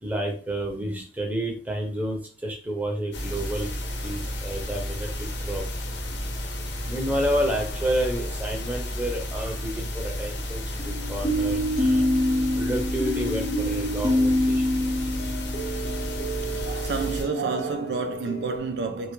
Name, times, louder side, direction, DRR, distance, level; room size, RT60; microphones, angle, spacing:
voice 1, 0.0-3.7 4.0-5.7 6.9-12.1 12.6-14.6, right 1 dB, 10° right, 0.5 m, -30 dB
sound 1, 3.1-17.2, left 1 dB, 85° left, 0.6 m, -32 dB
sound 2, 7.4-8.2 10.8-18.6, equal, 50° left, 0.7 m, -27 dB
voice 2, 16.6-19.1, right 4 dB, 70° right, 0.4 m, -29 dB
2.2 x 2.2 x 3.0 m
head